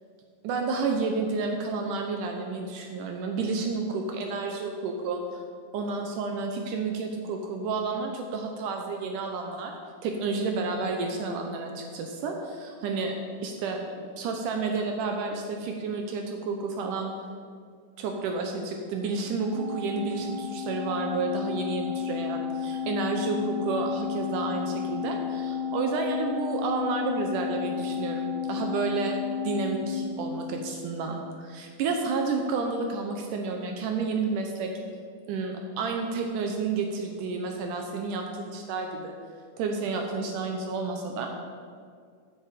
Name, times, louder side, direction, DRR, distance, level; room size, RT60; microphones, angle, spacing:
voice 1, 0.4-5.4 5.7-9.7 10.0-13.1 13.4-13.8 14.2-17.2 18.0-29.2 29.4-34.7 35.3-39.1 39.6-41.3, right 4 dB, 85° right, 3 dB, 1.8 m, -30 dB
Organ, 19.5-30.8, left 7 dB, 65° right, 2.1 m, -32 dB
14.0 x 7.4 x 5.1 m, 2.1 s
omnidirectional pair, 4.9 m